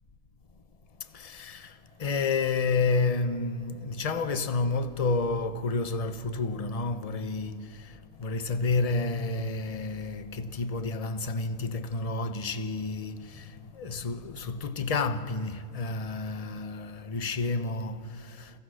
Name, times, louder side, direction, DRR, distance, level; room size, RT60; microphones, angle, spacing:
voice 1, 1.0-18.6, left 3 dB, 30° left, 0.8 m, -30 dB
28.5 x 17.0 x 6.4 m
omnidirectional pair, 1.4 m